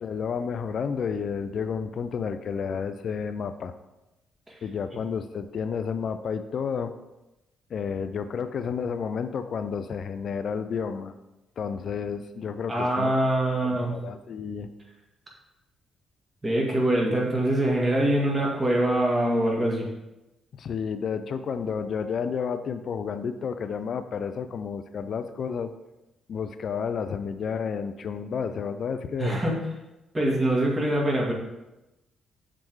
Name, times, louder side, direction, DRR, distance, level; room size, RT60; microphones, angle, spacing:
voice 1, 0.0-3.7 4.6-6.9 7.7-11.1 11.6-13.1 13.6-14.7 20.5-25.7 26.3-29.4, left 6 dB, 55° left, 11 dB, 0.4 m, -31 dB
voice 2, 12.7-13.9 16.4-19.9 29.2-29.6 30.1-31.3, right 1 dB, 20° right, -3 dB, 2.2 m, -24 dB
7.8 x 3.8 x 4.6 m, 0.98 s
cardioid pair, 90°, 0 cm